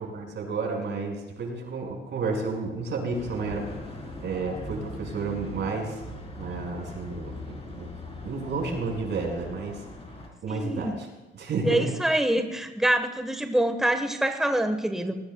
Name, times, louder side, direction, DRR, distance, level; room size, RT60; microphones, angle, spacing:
voice 1, 0.0-3.6 4.2-6.0 6.4-7.9 8.2-9.8 10.4-11.1 11.3-12.0, right 3 dB, 65° right, 1 dB, 5.4 m, -31 dB
sound 1, 3.1-10.3, left 1 dB, 30° left, 4.2 m, -40 dB
voice 2, 10.5-11.0 11.6-15.1, right 1 dB, ahead, 7 dB, 1.3 m, -25 dB
20.0 x 19.0 x 2.3 m, 1.1 s
cardioid pair, 90°, 20 cm